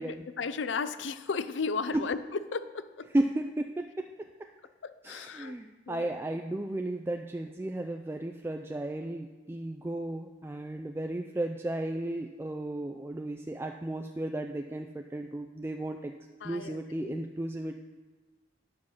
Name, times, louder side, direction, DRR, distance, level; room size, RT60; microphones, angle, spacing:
voice 1, 0.0-2.2 2.5-3.1 4.8-5.5 5.9-6.2 16.4-17.2, left 5 dB, 75° left, 13 dB, 0.5 m, -35 dB
voice 2, 3.1-4.0 5.0-16.1 16.4-17.8, right 1 dB, 15° right, 4 dB, 0.3 m, -34 dB
9.6 x 5.7 x 6.4 m, 1.3 s
head